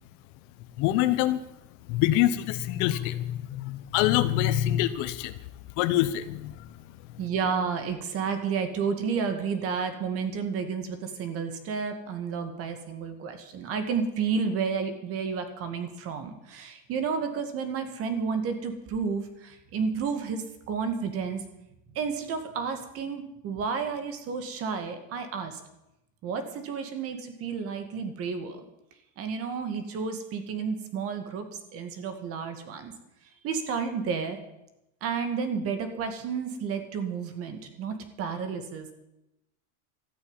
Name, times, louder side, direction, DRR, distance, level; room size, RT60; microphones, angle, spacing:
voice 1, 0.8-1.4 1.9-5.4 5.8-6.7, left 13 dB, 50° left, 13 dB, 1.0 m, -25 dB
voice 2, 7.2-21.4 21.9-25.6 26.2-28.6 29.2-32.9 33.4-34.4 35.0-38.9, right 6 dB, 35° right, 8 dB, 2.1 m, -31 dB
13.5 x 8.9 x 9.1 m, 0.87 s
supercardioid pair, 160°, 39 cm